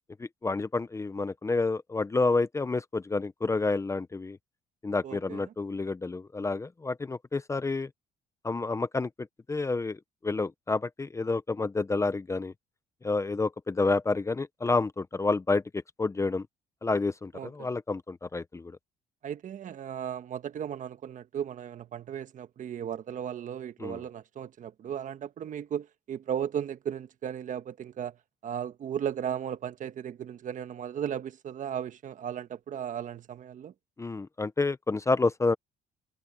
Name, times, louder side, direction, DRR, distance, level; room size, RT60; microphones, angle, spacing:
voice 1, 0.2-4.4 4.8-7.9 8.4-9.1 9.5-10.0 10.2-12.5 13.0-15.6 16.0-16.4 16.8-18.8 23.8-24.0 34.0-35.6, left 3 dB, 15° left, 0.7 m, -29 dB
voice 2, 5.0-5.4 17.3-17.7 19.2-28.1 28.4-33.7, right 9 dB, 50° right, 1.4 m, -36 dB
cardioid pair, 110°, 17 cm